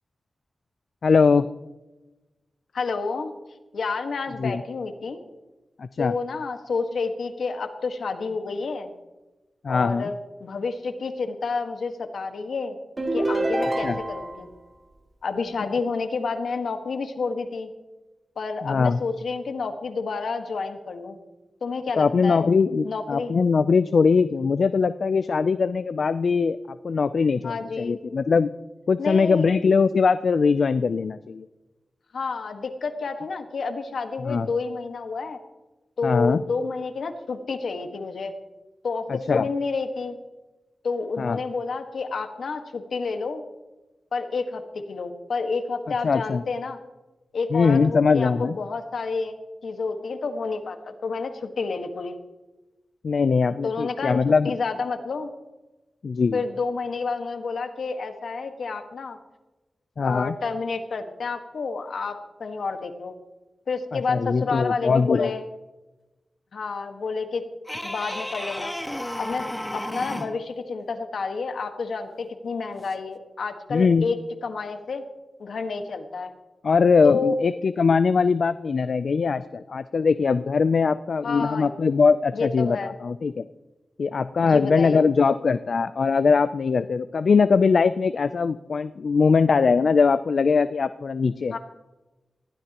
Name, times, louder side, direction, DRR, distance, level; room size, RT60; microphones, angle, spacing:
voice 1, 1.0-1.5 4.4-4.6 5.8-6.1 9.6-10.1 13.8-14.0 18.6-19.0 22.0-26.6 26.8-28.5 28.9-31.5 34.3-34.5 36.0-36.4 39.1-39.5 41.2-41.4 46.0-46.4 47.5-48.6 53.0-54.6 56.0-56.4 60.0-60.4 63.9-65.3 73.7-74.1 76.6-83.4 84.0-91.5, left 5 dB, 70° left, 12 dB, 0.4 m, -21 dB
voice 2, 2.7-3.3 3.7-5.2 6.0-8.9 9.7-12.8 13.1-14.5 15.2-17.7 18.4-21.2 21.6-22.4 22.8-23.3 27.4-27.9 29.0-29.5 32.1-35.4 36.0-38.3 38.8-40.2 40.8-43.4 44.1-46.8 47.3-49.4 49.6-52.2 53.6-54.2 54.4-55.3 56.3-59.2 60.0-63.2 63.7-65.4 66.5-67.4 67.8-68.7 69.2-69.5 69.7-75.0 75.4-76.3 77.0-77.4 81.2-81.7 82.3-82.9 84.5-85.0 91.5-91.6, left 4 dB, 85° left, 6 dB, 1.5 m, -29 dB
sound 1, 13.0-14.4, right 1 dB, 35° right, 2.4 m, -26 dB
sound 2, 67.7-70.4 72.9-73.0, left 1 dB, 10° left, 0.9 m, -33 dB
20.0 x 15.5 x 3.0 m, 1.1 s
wide cardioid pair, 100°, 0 cm